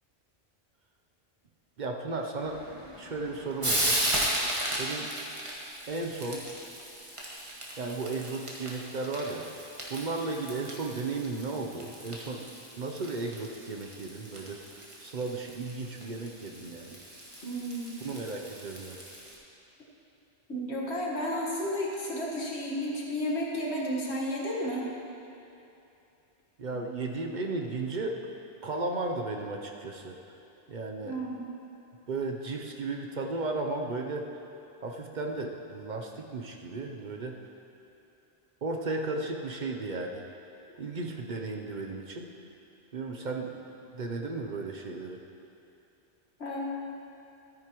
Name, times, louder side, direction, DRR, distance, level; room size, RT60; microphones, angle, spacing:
voice 1, 1.8-2.7 3.0-4.0 4.7-5.1 5.9-6.5 7.8-9.5 9.9-12.5 12.8-17.0 18.0-19.0 26.6-28.2 28.6-30.2 30.7-31.2 32.1-34.4 34.8-37.4 38.6-40.2 40.8-42.3 42.9-43.6 43.9-45.2, right 3 dB, 50° right, 2 dB, 0.8 m, -35 dB
Frying (food), 2.4-19.4, right 1 dB, 30° right, 1.5 m, -36 dB
voice 2, 17.4-18.0 20.5-24.9 26.7-26.8 31.0-31.4 46.4-46.7, equal, 85° left, -3 dB, 1.8 m, -32 dB
13.5 x 9.7 x 3.0 m, 2.8 s
omnidirectional pair, 1.1 m